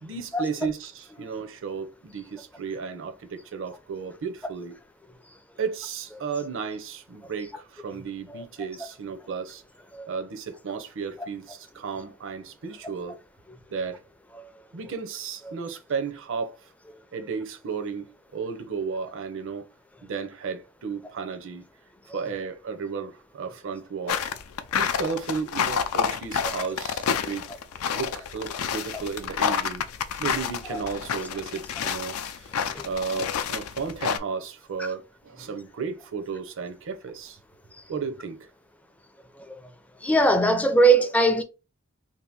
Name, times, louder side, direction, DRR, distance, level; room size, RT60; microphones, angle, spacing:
voice 1, 0.0-4.8 5.6-9.6 10.1-13.2 13.7-14.0 14.7-16.6 17.1-19.6 20.0-21.7 22.1-24.3 24.7-27.5 27.9-29.8 30.2-32.5 32.8-37.4 37.9-38.5, right 5 dB, 60° right, 0.6 m, -34 dB
sound 1, 24.1-34.2, left 7 dB, 85° left, 0.4 m, -29 dB
voice 2, 40.0-41.4, right 2 dB, 5° left, 0.4 m, -20 dB
2.8 x 2.5 x 3.5 m
head